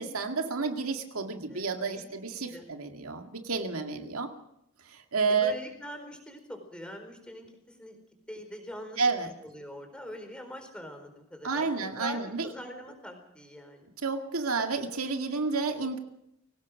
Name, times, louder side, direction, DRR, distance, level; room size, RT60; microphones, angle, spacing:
voice 1, 0.0-4.3 4.8-5.5 9.0-9.3 11.4-12.5 14.0-16.0, right 4 dB, 90° right, 5 dB, 2.1 m, -30 dB
voice 2, 1.5-2.2 2.5-2.7 3.7-4.0 5.3-8.0 8.3-9.0 9.4-11.7 12.0-13.9, equal, 5° left, 5 dB, 4.4 m, -43 dB
23.0 x 18.0 x 6.3 m, 0.79 s
head